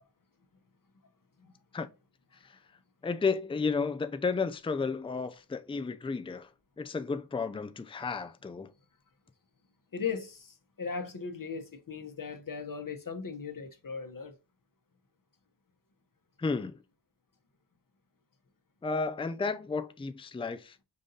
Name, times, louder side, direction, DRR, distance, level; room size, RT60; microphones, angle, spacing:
voice 1, 3.0-6.5 6.8-8.7 16.4-16.8 18.8-20.8, left 4 dB, 15° left, 0.5 m, -32 dB
voice 2, 9.9-14.3, left 5 dB, 50° left, 1.0 m, -38 dB
5.3 x 2.6 x 3.9 m
cardioid pair, 40°, 43 cm